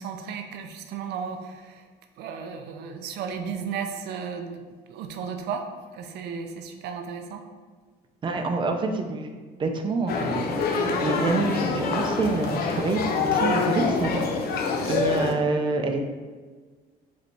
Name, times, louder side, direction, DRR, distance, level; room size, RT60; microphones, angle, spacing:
voice 1, 0.0-1.8 2.2-4.6 4.9-5.7 5.9-7.4, right 6 dB, 75° right, 6 dB, 0.5 m, -34 dB
voice 2, 8.2-9.3 9.6-14.2 14.5-16.0, right 3 dB, 30° right, 4 dB, 0.5 m, -27 dB
sound 1, 10.1-15.3, left 4 dB, 65° left, 0.6 m, -26 dB
4.9 x 3.3 x 3.1 m, 1.4 s
cardioid pair, 110°, 17 cm